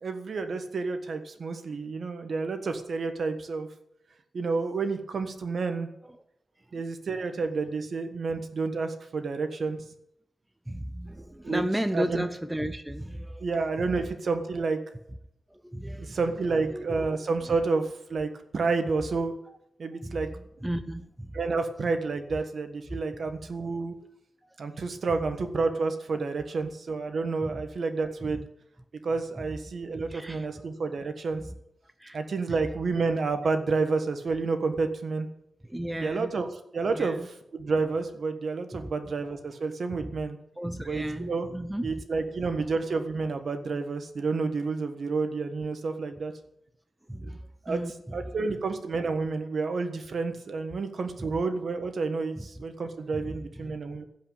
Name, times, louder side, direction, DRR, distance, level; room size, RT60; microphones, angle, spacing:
voice 1, 0.0-3.7 4.3-5.9 6.7-9.8 11.4-11.6 11.9-12.3 13.4-14.8 16.0-19.3 19.8-20.3 21.3-23.9 24.6-28.4 29.0-31.4 32.1-35.3 36.0-36.5 36.7-37.2 37.5-40.4 40.8-41.5 41.8-46.3 47.2-47.4 47.6-47.8 48.1-54.0, right 4 dB, 55° right, 7 dB, 1.4 m, -30 dB
voice 2, 10.7-13.5 13.8-13.9 15.5-16.2 16.6-17.1 20.0-21.4 22.9-23.0 23.5-23.6 26.6-26.7 27.4-27.6 30.0-30.5 31.5-31.6 32.0-32.2 32.5-32.6 35.6-36.3 36.9-37.3 38.7-38.9 40.0-40.1 40.6-42.6 47.1-48.2 52.4-52.5 53.1-53.7, equal, 5° right, 9 dB, 0.6 m, -35 dB
16.0 x 5.7 x 8.8 m, 0.78 s
wide cardioid pair, 160°, 0 cm